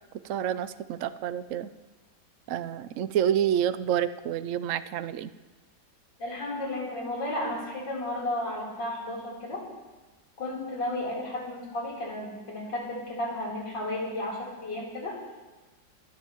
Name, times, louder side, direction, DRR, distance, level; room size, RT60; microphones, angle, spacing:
voice 1, 0.2-1.7 2.5-5.3, right 10 dB, 75° right, 13 dB, 0.7 m, -28 dB
voice 2, 6.2-9.6 10.4-15.2, left 1 dB, 80° left, -4 dB, 4.4 m, -33 dB
26.0 x 13.0 x 3.0 m, 1.2 s
omnidirectional pair, 1.9 m